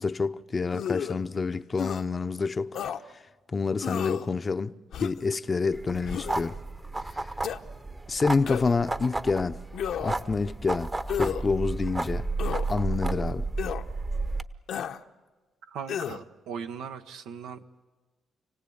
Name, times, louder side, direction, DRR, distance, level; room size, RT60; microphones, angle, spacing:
voice 1, 0.0-2.8 3.5-6.6 7.1-7.3 8.1-9.6 10.0-12.3 12.7-13.5, left 4 dB, 30° left, 0.7 m, -28 dB
sound 1, 0.7-1.2 1.8-2.0 2.7-3.0 3.8-4.3 4.9-5.3 6.0-6.5 7.4-7.6 8.5-8.9 9.7-10.2 11.1-11.4 12.4-12.7 13.6-13.8 14.7-15.0 15.9-16.2, left 9 dB, 70° left, 0.9 m, -32 dB
sound 2, 5.7-14.4, right 3 dB, 20° right, 0.9 m, -32 dB
voice 2, 15.6-17.6, right 7 dB, 90° right, 1.2 m, -39 dB
28.5 x 18.0 x 8.7 m
cardioid pair, 90°, 0 cm